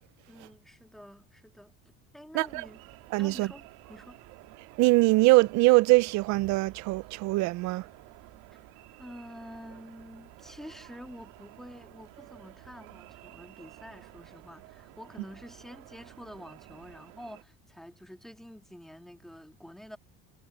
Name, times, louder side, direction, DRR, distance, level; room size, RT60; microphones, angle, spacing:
voice 1, 0.3-1.8 2.1-2.8 3.2-4.2 8.5-8.6 9.0-20.0, equal, ahead, 1.8 m, -48 dB
voice 2, 2.3-2.7 3.1-3.5 4.8-7.9, right 22 dB, 55° right, 0.5 m, -22 dB
sound 1, 2.4-17.4, right 21 dB, 80° right, 2.4 m, -52 dB
cardioid pair, 155°, 33 cm